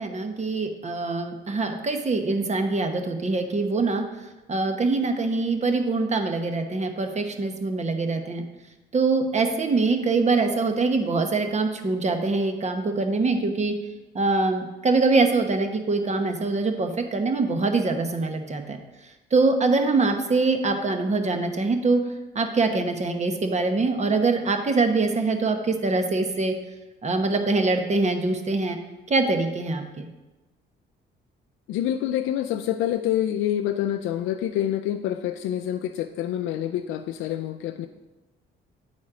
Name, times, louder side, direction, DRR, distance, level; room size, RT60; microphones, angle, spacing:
voice 1, 0.0-4.0 4.5-8.4 8.9-13.7 14.1-18.8 19.3-22.0 22.3-26.5 27.0-28.8 29.1-30.1, right 3 dB, 35° right, 6 dB, 1.0 m, -24 dB
voice 2, 31.7-37.9, left 11 dB, 90° left, 5 dB, 0.4 m, -27 dB
8.9 x 4.2 x 4.8 m, 1.1 s
cardioid pair, 90°, 20 cm